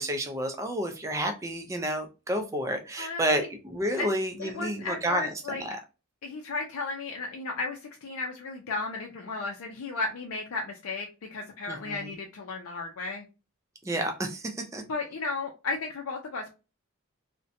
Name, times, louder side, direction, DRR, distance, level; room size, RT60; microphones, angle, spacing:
voice 1, 0.0-5.8 11.7-12.1 13.8-14.8, right 1 dB, 15° right, 5 dB, 0.3 m, -30 dB
voice 2, 3.0-3.5 4.0-4.1 4.4-5.6 6.2-13.2 14.9-16.5, left 3 dB, 80° left, 0 dB, 0.4 m, -34 dB
2.6 x 2.1 x 2.5 m, 0.30 s
head